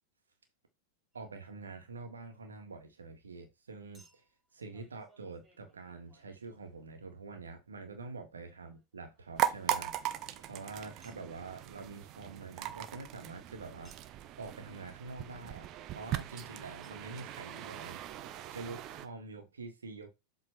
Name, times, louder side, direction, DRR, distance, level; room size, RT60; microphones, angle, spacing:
Chink clink, 1.1-1.3 3.9-7.1 8.7-10.4 11.0-11.3 13.8-14.2 16.4-16.5 16.8-16.9 17.6-17.7 17.9-18.0, right 2 dB, 15° right, 4.1 m, -66 dB
voice 1, 1.1-4.2 4.5-13.9 14.4-15.7 15.9-20.1, right 3 dB, 70° right, 1.6 m, -46 dB
sound 1, 9.4-19.1, right 12 dB, 35° right, 0.8 m, -39 dB
7.8 x 3.7 x 4.4 m
figure-of-eight pair, 90°, 0 cm